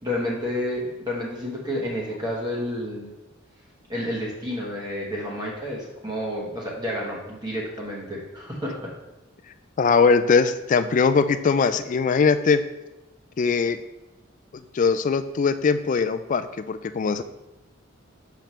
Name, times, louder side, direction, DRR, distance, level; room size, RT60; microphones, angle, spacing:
voice 1, 0.0-3.1 3.9-8.9, left 1 dB, 20° right, -4 dB, 1.1 m, -30 dB
voice 2, 9.8-12.6 13.4-13.8 14.5-17.2, left 5 dB, 40° left, 11 dB, 0.3 m, -21 dB
6.7 x 5.7 x 3.1 m, 1.0 s
head